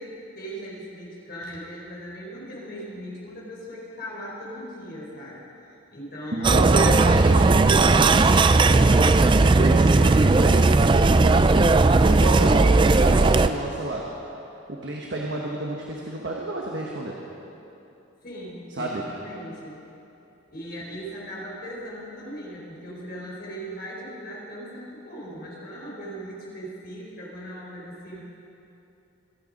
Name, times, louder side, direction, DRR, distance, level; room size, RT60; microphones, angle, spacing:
voice 1, 0.0-5.5 5.9-7.0 18.2-19.8 20.5-28.2, equal, 50° left, -4 dB, 4.3 m, -38 dB
voice 2, 6.3-14.1 14.7-17.1 18.8-19.0, right 2 dB, 60° right, -2 dB, 1.4 m, -30 dB
sound 1, 6.4-13.5, right 3 dB, 25° right, 0.3 m, -17 dB
25.0 x 9.2 x 5.4 m, 2.9 s
head